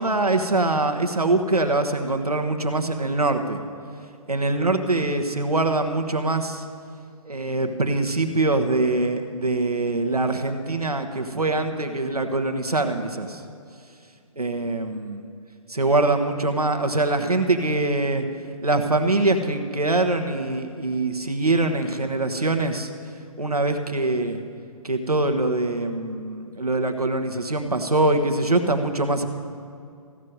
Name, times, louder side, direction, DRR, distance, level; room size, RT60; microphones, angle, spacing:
voice 1, 0.0-3.6 4.3-6.6 7.3-13.4 14.4-15.2 15.7-18.2 18.6-22.9 23.4-24.4 24.8-29.3, right 2 dB, 90° right, 6 dB, 1.1 m, -23 dB
15.0 x 6.5 x 9.2 m, 2.4 s
figure-of-eight pair, 135°, 19 cm